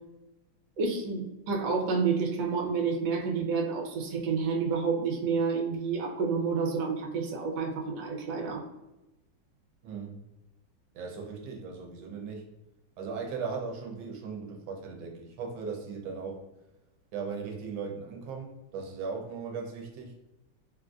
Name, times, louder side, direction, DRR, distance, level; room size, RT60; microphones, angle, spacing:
voice 1, 0.8-8.6, right 5 dB, 70° right, -1 dB, 1.2 m, -29 dB
voice 2, 9.8-10.2 10.9-12.4 13.0-16.4 17.1-20.1, right 5 dB, 90° right, 0 dB, 1.4 m, -38 dB
3.6 x 2.5 x 2.3 m, 0.98 s
omnidirectional pair, 2.1 m